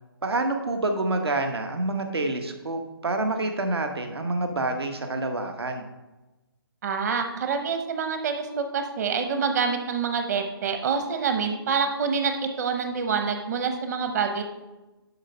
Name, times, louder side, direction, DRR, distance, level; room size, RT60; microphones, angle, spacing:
voice 1, 0.2-5.8, right 2 dB, 85° right, 5 dB, 1.1 m, -27 dB
voice 2, 6.8-12.3 12.6-14.4, right 5 dB, 45° right, 6 dB, 0.9 m, -26 dB
11.0 x 4.1 x 5.5 m, 1.1 s
hypercardioid pair, 155°, 13 cm